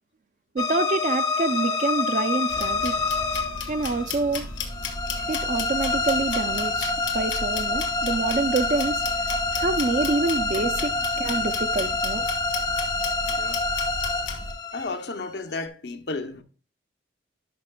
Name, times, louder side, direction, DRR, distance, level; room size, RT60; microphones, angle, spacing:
voice 1, 0.5-2.9 3.7-4.4 5.2-8.9 9.5-12.3, right 3 dB, 40° right, 0.4 m, -27 dB
sound 1, 0.6-15.7, left 3 dB, 20° left, 0.5 m, -27 dB
sound 2, 2.5-14.5, left 4 dB, 80° left, 1.3 m, -35 dB
voice 2, 10.5-11.6 13.3-13.6 14.7-16.4, left 3 dB, 60° left, 0.7 m, -35 dB
11.0 x 5.6 x 2.2 m
head